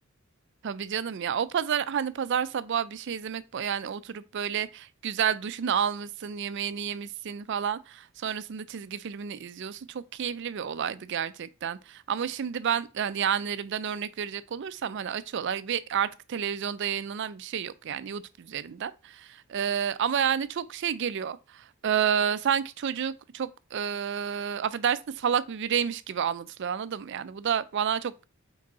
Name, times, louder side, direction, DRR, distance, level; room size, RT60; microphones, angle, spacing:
voice 1, 0.6-28.2, right 8 dB, 55° right, 0.4 m, -30 dB
5.0 x 4.6 x 4.1 m
head